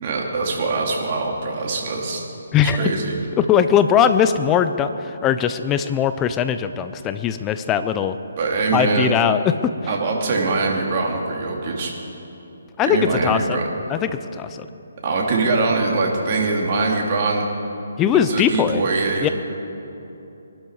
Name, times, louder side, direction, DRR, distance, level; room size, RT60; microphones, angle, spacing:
voice 1, 0.0-2.2 2.6-3.2 8.4-9.1 9.9-11.9 12.8-13.6 15.0-17.4 18.3-19.3, right 3 dB, 40° right, -1 dB, 2.9 m, -22 dB
voice 2, 2.5-2.9 3.4-8.2 8.7-9.5 12.8-13.6 13.9-14.7 18.0-18.8 19.2-19.3, left 8 dB, 15° left, 11 dB, 0.6 m, -20 dB
23.0 x 12.0 x 4.8 m, 2.9 s
hypercardioid pair, 155°, 0 cm